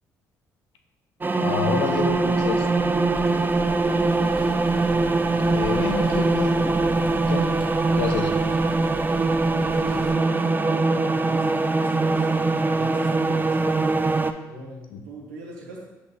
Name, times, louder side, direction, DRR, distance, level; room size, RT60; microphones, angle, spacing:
sound 1, 1.2-14.3, right 3 dB, 20° right, 0.4 m, -22 dB
voice 1, 1.4-2.7 5.5-6.7 7.1-7.5 7.9-8.3 14.9-15.0, left 6 dB, 70° left, 5 dB, 0.7 m, -28 dB
sound 2, 1.5-10.1, right 1 dB, ahead, 1.5 m, -39 dB
voice 2, 3.5-4.6 9.5-14.1 14.4-15.8, right 1 dB, 90° right, -1 dB, 1.1 m, -41 dB
5.8 x 5.4 x 3.1 m, 1.1 s
hypercardioid pair, 55°, 10 cm